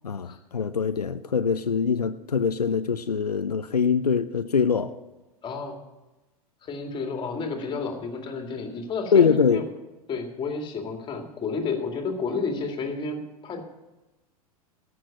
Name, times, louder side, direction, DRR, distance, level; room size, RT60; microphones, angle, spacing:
voice 1, 0.0-5.0 9.1-9.6, left 6 dB, 90° left, 0.5 m, -23 dB
voice 2, 5.4-5.8 6.6-9.6 10.1-13.6, left 4 dB, 25° left, 2.2 m, -31 dB
13.5 x 6.2 x 9.7 m
figure-of-eight pair, 90°, 20 cm